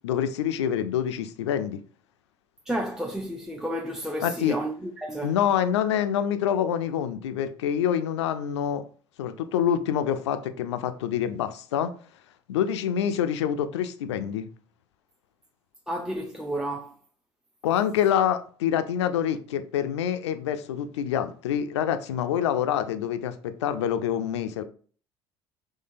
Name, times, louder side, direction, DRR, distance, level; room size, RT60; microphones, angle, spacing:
voice 1, 0.0-1.8 4.2-4.6 5.2-8.8 9.2-11.9 12.5-14.5 17.6-24.6, left 9 dB, 80° left, 0.4 m, -26 dB
voice 2, 2.7-5.3 15.9-16.9, right 1 dB, 5° right, 0.5 m, -31 dB
3.7 x 3.2 x 2.6 m
hypercardioid pair, 60°, 14 cm